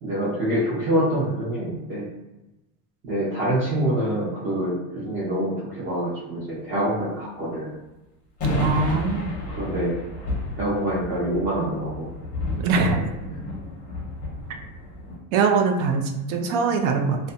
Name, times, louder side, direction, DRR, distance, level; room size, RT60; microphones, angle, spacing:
voice 1, 0.0-2.1 3.0-7.7 9.6-10.0 10.6-12.1, right 1 dB, 30° right, -9 dB, 0.7 m, -25 dB
sound 1, 8.4-15.2, left 1 dB, 20° left, 0.5 m, -31 dB
voice 2, 8.6-9.4 12.5-13.1 15.3-17.2, right 4 dB, 70° right, 4 dB, 0.5 m, -22 dB
2.4 x 2.1 x 2.5 m, 0.99 s
cardioid pair, 165°, 43 cm